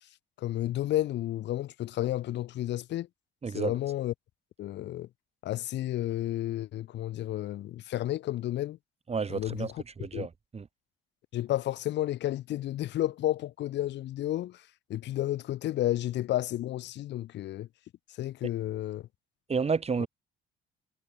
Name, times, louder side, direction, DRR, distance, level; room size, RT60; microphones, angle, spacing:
voice 1, 0.4-3.1 3.5-4.1 4.6-5.1 5.4-8.8 9.3-9.8 10.1-10.3 11.3-14.6 14.9-17.7 18.2-19.1 20.0-20.1, left 14 dB, 65° left, 3.2 m, -31 dB
voice 2, 3.4-3.7 9.1-9.7 10.0-10.7 19.5-20.1, right 5 dB, 35° right, 5.7 m, -30 dB
supercardioid pair, 75°, 19 cm